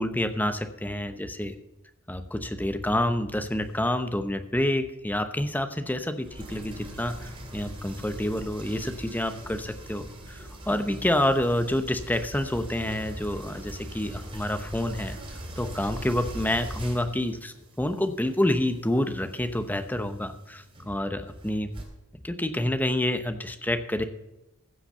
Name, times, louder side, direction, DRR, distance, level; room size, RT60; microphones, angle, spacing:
voice 1, 0.0-1.5 2.1-21.7 22.2-24.0, left 1 dB, 10° left, 9 dB, 0.8 m, -28 dB
sound 1, 3.3-3.9 6.1-21.8, right 1 dB, 25° right, 3.2 m, -42 dB
15.5 x 5.7 x 6.8 m, 0.93 s
head